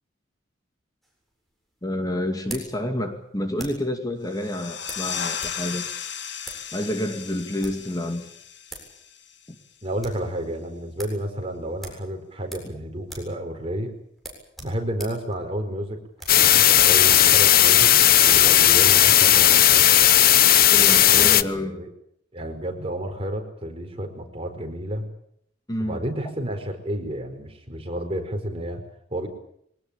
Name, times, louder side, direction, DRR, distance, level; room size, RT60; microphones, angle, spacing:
sound 1, 1.0-3.9 4.9-5.6 5.9-6.0 6.4-6.7 7.4-7.9 8.4-8.5 8.7-8.9 9.2-9.3 9.7-10.3 10.6-10.7 11.0-11.2 11.8-12.8 13.0-13.4 13.6-13.8 14.2-18.0, right 1 dB, ahead, 7.5 m, -42 dB
voice 1, 1.8-5.8 6.7-8.3 9.5-9.6 20.7-21.8 25.7-26.1, left 1 dB, 20° left, 5 dB, 2.5 m, -29 dB
sound 2, 4.3-9.6, left 8 dB, 70° left, 2.1 m, -35 dB
voice 2, 9.8-13.9 14.6-16.0 16.3-17.9 18.2-19.9 21.1-21.9 22.3-25.1 25.8-28.8 29.1-29.3, right 1 dB, 30° right, 5 dB, 4.8 m, -31 dB
sound 3, 16.3-21.4, left 12 dB, 55° left, 0.9 m, -15 dB
23.5 x 19.0 x 8.9 m, 0.71 s
head